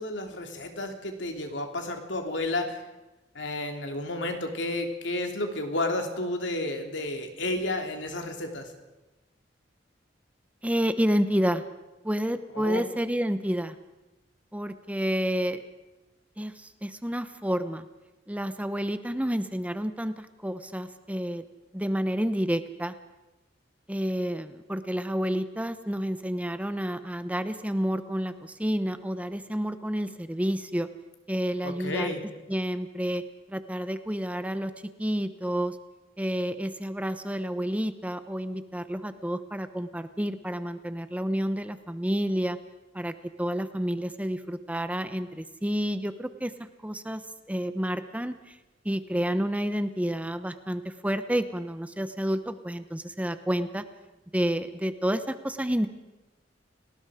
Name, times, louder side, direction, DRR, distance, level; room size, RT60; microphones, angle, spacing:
voice 1, 0.0-2.8 3.3-8.7 12.5-12.8 31.6-32.2, left 2 dB, 80° left, 4 dB, 2.9 m, -31 dB
voice 2, 10.6-11.6 12.0-13.7 14.5-15.6 16.4-17.8 18.3-21.4 21.7-22.9 23.9-30.9 31.3-32.1 32.5-33.2 33.5-34.7 35.0-35.8 36.2-42.6 42.9-46.5 46.8-47.2 47.5-48.6 48.8-53.8 54.3-55.9, equal, 10° right, 11 dB, 0.9 m, -29 dB
30.0 x 19.0 x 5.0 m, 1.0 s
head